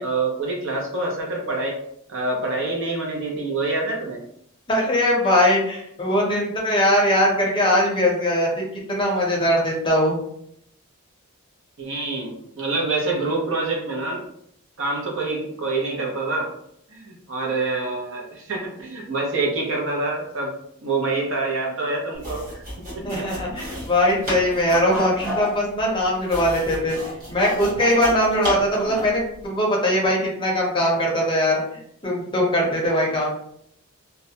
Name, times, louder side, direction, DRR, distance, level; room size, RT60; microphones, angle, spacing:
voice 1, 0.0-1.8 2.1-4.2 11.8-14.2 14.8-16.5 16.9-20.5 20.8-23.3, right 3 dB, 60° right, -1 dB, 0.7 m, -26 dB
voice 2, 4.7-8.6 8.9-10.2 23.0-27.0 27.3-31.6 32.0-33.3, left 1 dB, 25° left, -2 dB, 0.6 m, -21 dB
sound 1, 22.1-29.2, left 1 dB, 40° right, 1.0 m, -32 dB
2.3 x 2.0 x 2.7 m, 0.72 s
head